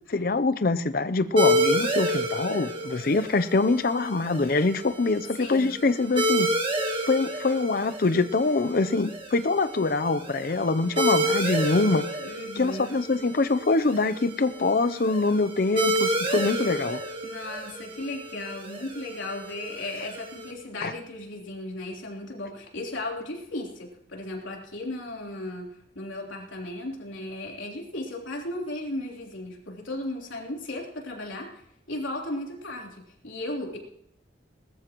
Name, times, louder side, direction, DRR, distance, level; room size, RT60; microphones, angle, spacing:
voice 1, 0.1-6.5 7.1-12.0 12.6-17.0 20.8-20.9, left 3 dB, 50° left, 0.6 m, -24 dB
sound 1, 1.4-20.5, equal, 25° right, 1.8 m, -30 dB
voice 2, 5.4-5.7 12.2-13.0 17.2-33.8, left 1 dB, 90° left, 3.5 m, -36 dB
20.0 x 13.5 x 3.0 m
head